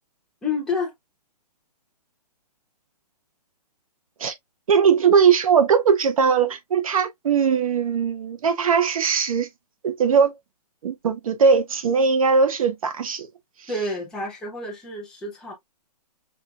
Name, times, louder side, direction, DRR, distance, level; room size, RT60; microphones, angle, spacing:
voice 1, 0.4-0.9 13.7-15.5, left 3 dB, 5° left, 0.6 m, -29 dB
voice 2, 4.7-9.5 9.8-10.3 10.8-13.3 13.6-13.7, right 6 dB, 55° right, 0.5 m, -20 dB
5.4 x 2.4 x 2.3 m
hypercardioid pair, 170°, 21 cm